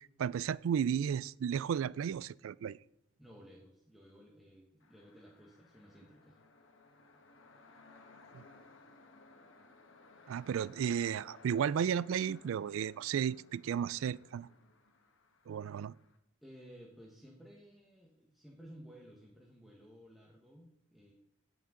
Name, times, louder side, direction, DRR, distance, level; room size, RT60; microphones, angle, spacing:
voice 1, 0.0-2.8 8.3-8.4 10.3-14.5 15.5-15.9, right 8 dB, 80° right, 0.3 m, -34 dB
voice 2, 3.2-6.4 16.4-21.1, equal, ahead, 1.3 m, -56 dB
sound 1, 4.8-16.2, left 3 dB, 65° left, 1.3 m, -60 dB
17.0 x 6.2 x 3.8 m
head